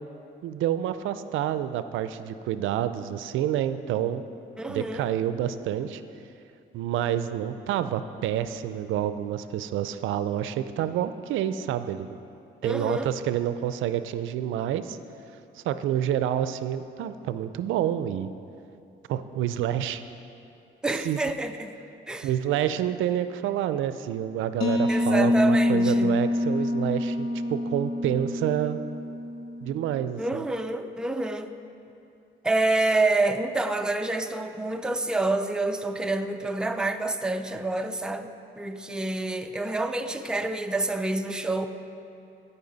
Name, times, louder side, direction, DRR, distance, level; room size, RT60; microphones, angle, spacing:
voice 1, 0.4-4.2 4.7-6.0 6.7-12.2 12.6-15.0 15.6-18.3 19.1-20.0 21.0-21.2 22.2-28.8 29.6-30.4, right 11 dB, 80° right, 12 dB, 0.4 m, -28 dB
voice 2, 4.6-5.1 12.6-13.1 20.8-21.7 22.1-22.3 24.9-26.2 30.2-31.5 32.4-38.3 38.6-41.7, right 2 dB, 5° right, 7 dB, 0.4 m, -27 dB
sound 1, 24.6-30.2, left 1 dB, 85° left, 0.9 m, -26 dB
15.5 x 5.6 x 4.0 m, 2.6 s
cardioid pair, 90°, 20 cm